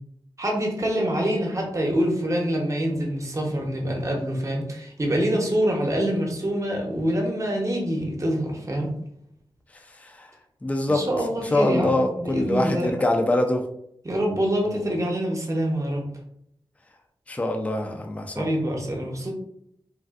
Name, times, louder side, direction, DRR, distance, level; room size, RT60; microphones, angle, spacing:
voice 1, 0.4-8.9 10.9-12.9 14.0-16.0 18.3-19.3, equal, 35° right, 0 dB, 0.8 m, -25 dB
voice 2, 10.6-11.0 11.4-13.6 14.7-14.9 17.3-18.5, left 1 dB, 15° left, 3 dB, 0.4 m, -24 dB
3.4 x 2.4 x 2.3 m, 0.72 s
wide cardioid pair, 70°, 10 cm